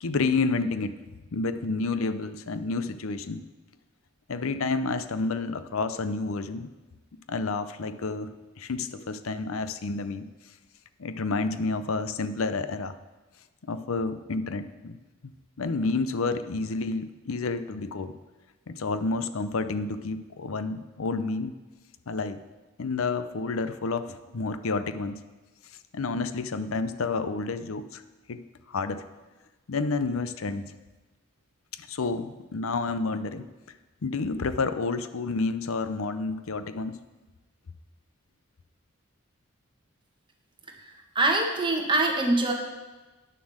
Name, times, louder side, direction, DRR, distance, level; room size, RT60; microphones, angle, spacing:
voice 1, 0.0-0.9 1.3-3.4 4.3-6.7 7.3-10.3 11.0-12.9 13.6-15.0 15.2-15.3 15.6-18.1 18.7-21.5 22.1-22.4 22.8-25.2 25.9-28.0 28.3-29.0 29.7-30.6 31.7-33.5 34.0-37.0, left 3 dB, 80° left, 12 dB, 0.6 m, -30 dB
voice 2, 41.1-42.5, right 2 dB, 25° right, 1 dB, 1.4 m, -23 dB
9.3 x 7.1 x 6.4 m, 1.2 s
head